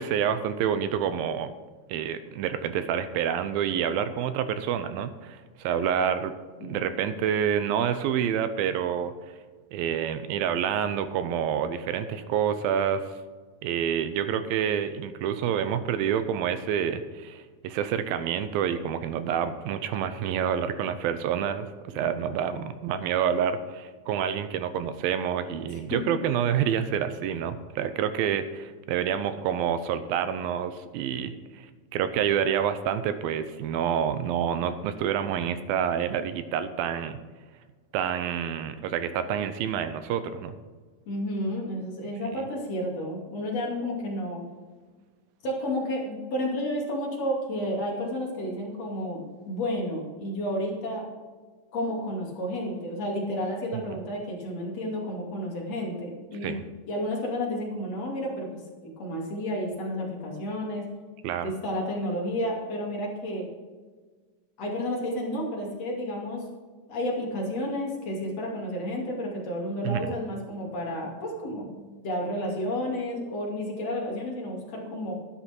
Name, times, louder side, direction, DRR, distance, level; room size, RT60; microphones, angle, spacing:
voice 1, 0.0-1.5 1.9-6.3 6.6-9.1 9.7-13.0 13.6-31.7 31.9-37.2 37.9-40.5 53.7-53.8 56.4-56.6 61.2-61.5 69.8-70.2, right 8 dB, 80° right, 11 dB, 2.5 m, -28 dB
voice 2, 6.6-7.2 21.9-22.4 25.7-26.0 41.1-44.4 45.4-51.1 51.7-56.6 56.9-58.5 59.0-60.8 61.4-63.5 64.6-66.5 66.9-75.1, left 1 dB, 45° left, -2 dB, 3.5 m, -31 dB
11.5 x 11.0 x 4.5 m, 1.4 s
omnidirectional pair, 4.2 m